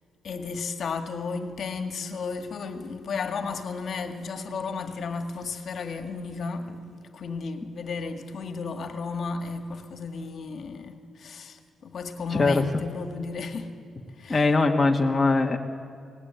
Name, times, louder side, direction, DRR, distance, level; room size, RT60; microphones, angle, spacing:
voice 1, 0.2-13.7 14.2-14.4, left 4 dB, 55° left, 1.8 m, -34 dB
voice 2, 12.3-12.8 14.3-15.6, left 3 dB, 20° left, 1.4 m, -21 dB
24.5 x 19.0 x 9.3 m
cardioid pair, 140°, 0 cm